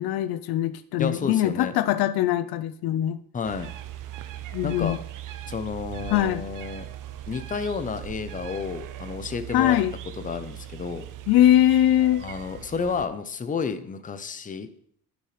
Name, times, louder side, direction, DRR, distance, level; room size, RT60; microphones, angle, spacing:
voice 1, 0.0-3.2 4.5-5.0 6.1-6.4 9.5-9.9 11.3-12.3, left 12 dB, 75° left, 12 dB, 0.5 m, -21 dB
voice 2, 1.0-1.7 3.3-3.7 4.6-5.0 5.5-6.9 7.3-9.8 10.2-11.0 12.2-14.7, left 5 dB, 20° left, 10 dB, 0.6 m, -31 dB
sound 1, 3.4-13.1, right 12 dB, 55° right, 0.6 m, -39 dB
12.0 x 4.7 x 3.2 m, 0.62 s
cardioid pair, 105°, 38 cm